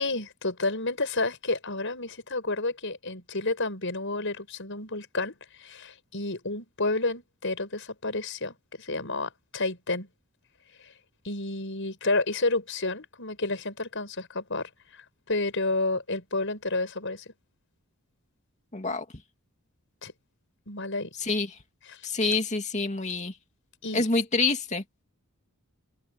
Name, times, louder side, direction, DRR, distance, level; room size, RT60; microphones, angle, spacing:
voice 1, 0.0-10.1 10.8-10.9 11.2-17.3 20.0-20.1 20.7-21.1 21.9-22.1 23.8-24.0, left 2 dB, 60° left, 7.3 m, -30 dB
voice 2, 18.7-19.0 21.2-21.6 22.0-23.3 23.9-24.8, left 3 dB, 35° left, 2.5 m, -27 dB
open air
head